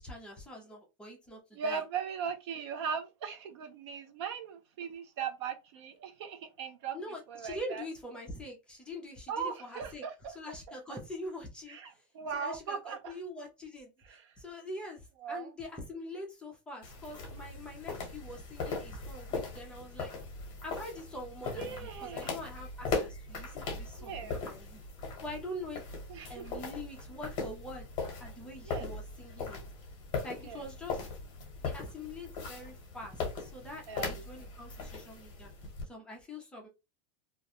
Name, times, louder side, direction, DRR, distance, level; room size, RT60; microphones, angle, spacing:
voice 1, 0.0-1.8 6.9-10.1 10.3-12.0 12.3-20.1 20.6-24.8 25.2-25.8 26.3-27.9 28.2-29.6 30.2-31.1 31.6-35.5 35.9-36.7, left 1 dB, 5° left, 0.5 m, -44 dB
voice 2, 1.5-7.0 7.3-7.8 9.3-10.3 11.7-13.1 14.1-14.3 15.2-15.5 21.5-22.4 24.0-24.4 26.1-26.6 28.6-28.9 30.4-30.6 33.9-34.1 34.4-34.5, right 6 dB, 60° right, 0.6 m, -39 dB
sound 1, 16.8-35.8, left 4 dB, 30° left, 1.0 m, -39 dB
2.4 x 2.1 x 2.8 m
supercardioid pair, 170°, 16 cm